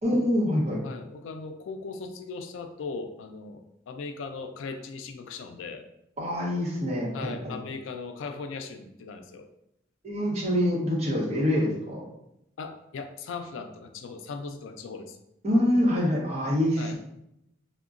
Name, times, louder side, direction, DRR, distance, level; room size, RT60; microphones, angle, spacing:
voice 1, 0.0-0.8 6.2-7.6 10.0-12.0 15.4-17.0, left 1 dB, 35° right, -4 dB, 0.8 m, -25 dB
voice 2, 0.8-5.8 7.1-9.5 12.6-15.2 16.8-17.0, left 4 dB, 90° left, 7 dB, 0.3 m, -38 dB
3.6 x 2.1 x 2.4 m, 0.81 s
head